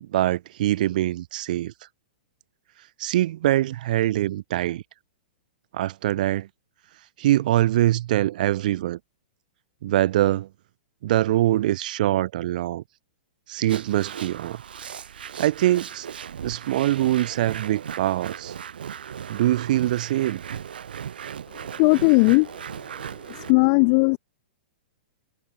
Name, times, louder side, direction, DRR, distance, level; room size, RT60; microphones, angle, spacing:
voice 1, 0.0-1.7 3.0-4.8 5.7-6.5 7.2-9.0 9.8-10.5 11.0-12.8 13.5-14.6 15.4-16.1 16.4-18.5 19.3-20.4, right 14 dB, 60° right, 0.6 m, -23 dB
sound 1, 13.7-23.5, right 8 dB, 85° right, 1.0 m, -37 dB
voice 2, 21.8-22.5 23.3-24.2, left 33 dB, 40° left, 0.5 m, -17 dB
hypercardioid pair, 135°, 5 cm